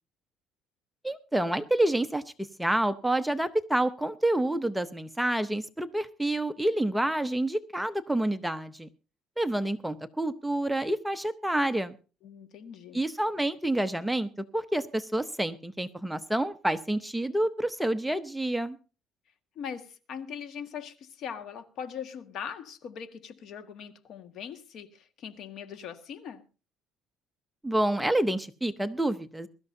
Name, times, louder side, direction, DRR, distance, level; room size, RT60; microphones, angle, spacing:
voice 1, 1.0-8.9 9.4-11.9 12.9-18.8 27.6-29.5, right 1 dB, 5° right, 0.7 m, -28 dB
voice 2, 12.2-13.0 19.5-26.4, left 7 dB, 55° left, 1.6 m, -41 dB
22.5 x 13.0 x 2.7 m
cardioid pair, 140°, 0 cm